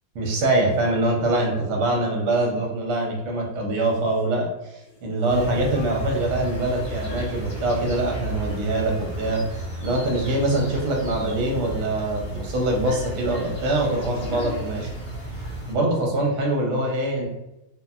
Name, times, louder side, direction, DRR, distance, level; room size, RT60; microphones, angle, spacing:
voice 1, 0.2-14.9 15.7-17.3, right 2 dB, 80° right, -1 dB, 1.5 m, -24 dB
sound 1, 0.7-0.9 3.8-4.3 4.6-5.8 6.4-7.3 8.3-9.2 9.6-9.9 10.9-11.1 11.3-11.8 13.3-14.6 15.4-15.6 15.9-16.0 16.5-16.6, left 4 dB, 90° left, 1.8 m, -43 dB
sound 2, 5.3-15.7, right 1 dB, 45° left, 1.2 m, -33 dB
3.9 x 2.1 x 2.2 m, 0.92 s
omnidirectional pair, 2.3 m